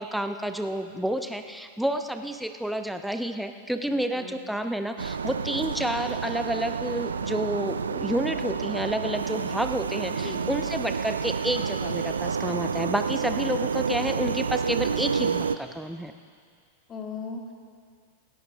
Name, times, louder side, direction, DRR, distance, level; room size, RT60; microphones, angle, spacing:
voice 1, 0.0-16.1, right 1 dB, ahead, 7 dB, 0.8 m, -30 dB
sound 1, 5.0-15.6, right 6 dB, 85° right, 0.4 m, -29 dB
voice 2, 10.1-10.4 16.9-17.5, left 4 dB, 30° left, 0 dB, 2.5 m, -37 dB
17.5 x 16.5 x 3.5 m, 2.1 s
hypercardioid pair, 95°, 0 cm